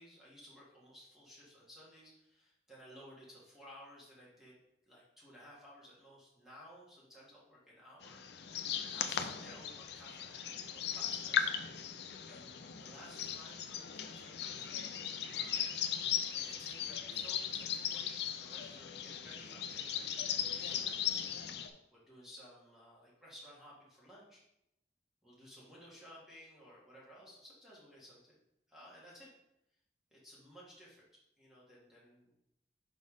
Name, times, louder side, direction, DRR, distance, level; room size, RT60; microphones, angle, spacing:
voice 1, 0.0-4.6 4.9-8.2 8.9-11.5 11.9-14.7 15.3-15.9 16.3-21.2 21.9-24.4 25.2-28.4 28.7-29.3 30.1-31.0 31.4-32.3, equal, ahead, -7 dB, 1.7 m, -56 dB
sound 1, 8.0-21.7, left 8 dB, 60° left, 0.5 m, -38 dB
4.9 x 4.2 x 5.3 m, 0.82 s
head